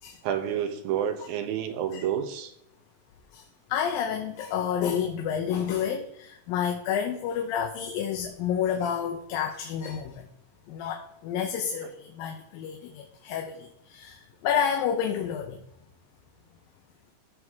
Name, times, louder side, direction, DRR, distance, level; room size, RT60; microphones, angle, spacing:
voice 1, 0.2-2.5, right 9 dB, 85° right, 7 dB, 2.8 m, -29 dB
voice 2, 3.3-10.2 10.7-15.6, left 8 dB, 85° left, 2 dB, 2.7 m, -30 dB
15.0 x 6.3 x 3.6 m, 0.77 s
omnidirectional pair, 4.0 m